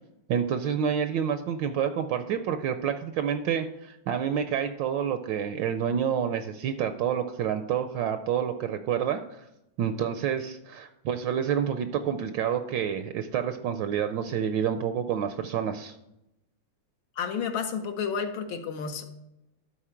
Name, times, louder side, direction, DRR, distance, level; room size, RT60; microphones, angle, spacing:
voice 1, 0.3-9.5 9.8-16.0, right 8 dB, 75° right, 9 dB, 1.2 m, -28 dB
voice 2, 17.2-19.0, left 6 dB, 75° left, 6 dB, 1.6 m, -31 dB
12.5 x 4.2 x 4.4 m, 0.87 s
omnidirectional pair, 2.2 m